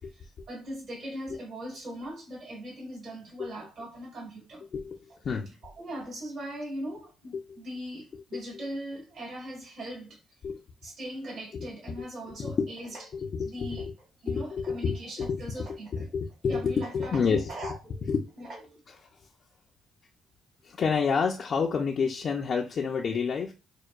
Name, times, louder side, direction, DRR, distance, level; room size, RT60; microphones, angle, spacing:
voice 1, 0.0-4.7 5.1-5.2 5.6-10.2 10.8-13.9 14.2-16.1 16.5-18.1 18.4-18.8, equal, 55° right, 2.3 m, -40 dB
voice 2, 8.3-8.7 10.4-10.6 11.5-11.7 12.0-12.1 12.4-12.7 13.1-13.9 14.3-17.8 18.1-18.2 18.9-19.0 20.6-23.5, left 5 dB, 55° left, 0.5 m, -29 dB
6.4 x 2.2 x 2.4 m
cardioid pair, 90°, 0 cm